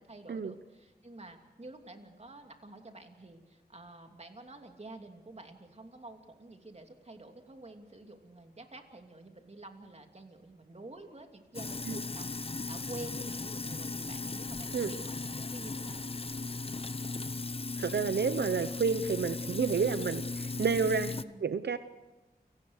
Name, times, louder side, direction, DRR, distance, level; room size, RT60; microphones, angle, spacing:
voice 1, 0.1-12.3 12.7-16.0 21.2-21.5, right 2 dB, 40° right, 4 dB, 2.8 m, -49 dB
Sink (filling or washing), 11.5-21.2, left 3 dB, 35° left, 0.7 m, -37 dB
voice 2, 17.8-21.1 21.4-21.8, right 5 dB, 85° right, 12 dB, 0.7 m, -30 dB
29.5 x 18.0 x 6.5 m, 1.1 s
wide cardioid pair, 80°, 17 cm